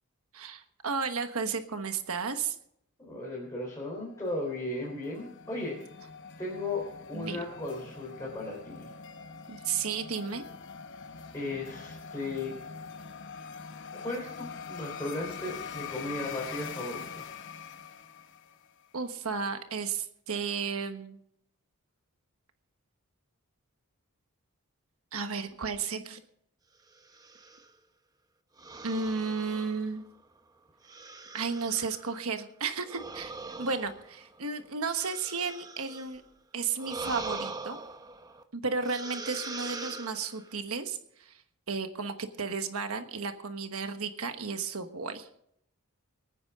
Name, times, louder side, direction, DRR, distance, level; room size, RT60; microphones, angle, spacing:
voice 1, 0.3-2.6 7.1-7.4 9.5-10.4 18.9-21.2 25.1-26.2 28.8-30.0 31.3-36.2 36.5-37.8 38.5-41.4 41.7-45.3, right 5 dB, 70° right, 7 dB, 1.3 m, -33 dB
voice 2, 3.0-5.8 6.4-8.9 11.3-12.5 13.9-17.3, left 2 dB, 15° left, -4 dB, 3.6 m, -36 dB
sound 1, 4.1-18.8, left 6 dB, 55° left, 0.9 m, -44 dB
sound 2, 27.0-27.7 28.6-30.2 30.8-32.1 32.8-36.2 36.8-38.4 38.8-40.6, right 3 dB, 15° right, 0.9 m, -42 dB
24.5 x 9.6 x 3.7 m, 0.71 s
head